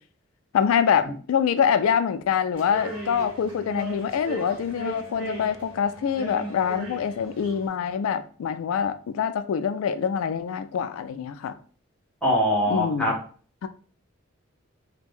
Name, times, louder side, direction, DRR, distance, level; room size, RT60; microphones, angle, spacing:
voice 1, 0.5-11.6 12.7-13.1 13.6-13.7, left 7 dB, 80° left, 0.3 m, -25 dB
sound 1, 2.5-7.7, right 1 dB, 25° right, 1.4 m, -38 dB
voice 2, 12.2-13.1, left 1 dB, 5° left, 0.7 m, -22 dB
2.5 x 2.1 x 3.5 m
head